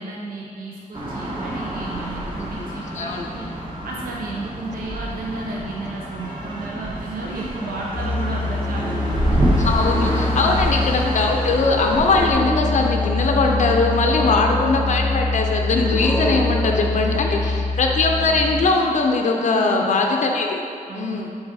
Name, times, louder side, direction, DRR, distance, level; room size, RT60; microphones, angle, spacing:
voice 1, 0.0-3.5 3.8-9.4 10.4-10.8 14.1-14.5 16.8-17.6 19.4-20.0 20.9-21.3, right 2 dB, 75° right, -2 dB, 0.7 m, -33 dB
sound 1, 0.9-12.3, right 1 dB, 35° right, 1.1 m, -27 dB
voice 2, 3.0-3.3 9.6-20.6 20.9-21.3, left 3 dB, 55° left, 2 dB, 0.5 m, -20 dB
Musical instrument, 7.9-18.7, left 2 dB, 10° left, 0.5 m, -24 dB
6.9 x 3.9 x 4.1 m, 2.5 s
wide cardioid pair, 120°, 15 cm